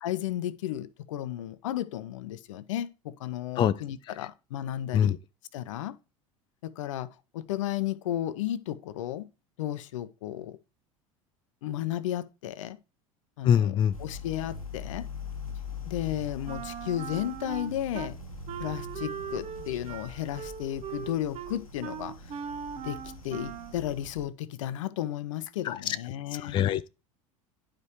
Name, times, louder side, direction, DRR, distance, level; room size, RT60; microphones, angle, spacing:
voice 1, 0.0-5.2 5.5-6.0 6.6-9.3 9.6-10.6 11.6-12.8 13.4-15.1 15.9-18.2 18.6-22.2 22.8-26.6, left 12 dB, 65° left, 0.7 m, -34 dB
voice 2, 13.4-13.9 25.6-26.0 26.4-26.9, left 9 dB, 25° left, 0.4 m, -24 dB
sound 1, 13.9-24.3, left 4 dB, 85° left, 1.0 m, -42 dB
Wind instrument woodwind instrument, 16.5-18.1 18.5-23.8, right 8 dB, 40° right, 0.9 m, -39 dB
10.5 x 5.1 x 3.0 m
figure-of-eight pair, 75°, 18 cm